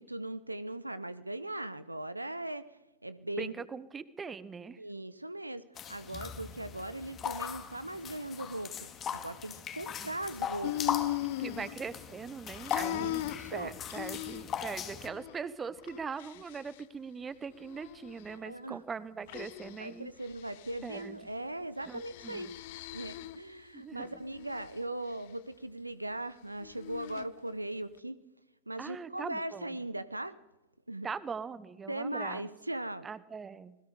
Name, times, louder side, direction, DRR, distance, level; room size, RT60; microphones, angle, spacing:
voice 1, 0.0-2.6 3.0-3.5 4.8-11.0 12.8-13.7 18.4-18.8 19.8-22.5 22.9-28.2 28.7-30.4 30.9-31.1 31.9-33.1, right 1 dB, 85° right, 14 dB, 1.0 m, -39 dB
voice 2, 3.4-4.8 10.0-10.1 11.4-13.2 13.5-20.1 20.8-21.2 21.9-22.5 23.7-24.1 28.8-29.8 31.0-32.5 33.0-33.8, right 5 dB, 20° right, 16 dB, 1.1 m, -41 dB
sound 1, 5.8-15.1, left 8 dB, 30° left, 2.2 m, -39 dB
sound 2, 10.6-12.2 12.6-14.7 15.0-15.3 15.8-16.8 17.5-18.4 19.3-19.9 20.2-21.0 21.8-23.5 24.0-24.8 26.6-27.3, left 15 dB, 50° left, 0.8 m, -39 dB
27.0 x 21.0 x 5.1 m, 0.99 s
figure-of-eight pair, 90°, 0 cm